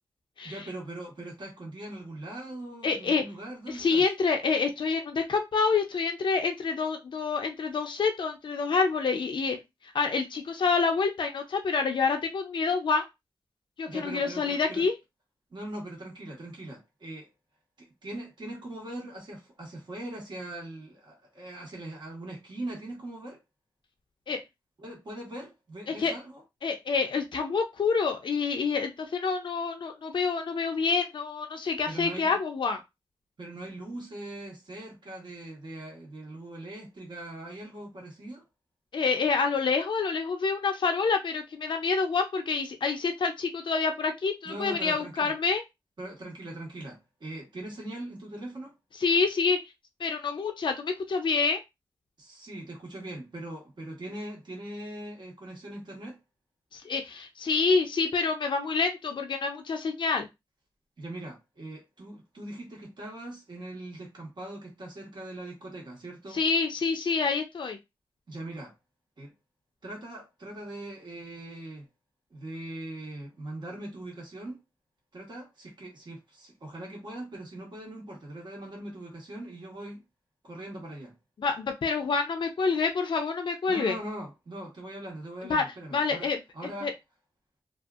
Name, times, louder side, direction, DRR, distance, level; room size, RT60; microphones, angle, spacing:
voice 1, 0.4-4.0 13.9-14.8 15.5-17.3 17.8-23.4 24.8-26.4 31.9-32.4 33.4-38.4 44.4-45.3 46.0-48.7 52.2-56.2 61.0-66.4 68.3-68.7 69.2-69.3 69.8-71.9 72.3-74.6 75.1-80.0 80.4-81.2 83.7-86.9, right 1 dB, 60° right, 1.2 m, -41 dB
voice 2, 2.8-3.2 3.7-9.6 9.9-13.0 13.8-14.9 24.3-24.4 25.9-26.1 26.6-32.8 38.9-45.6 49.0-49.6 50.0-51.6 56.7-60.3 66.3-67.8 81.4-84.0 85.4-85.6 85.9-86.9, left 4 dB, 65° left, 0.5 m, -27 dB
2.6 x 2.4 x 2.4 m
cardioid pair, 50°, 9 cm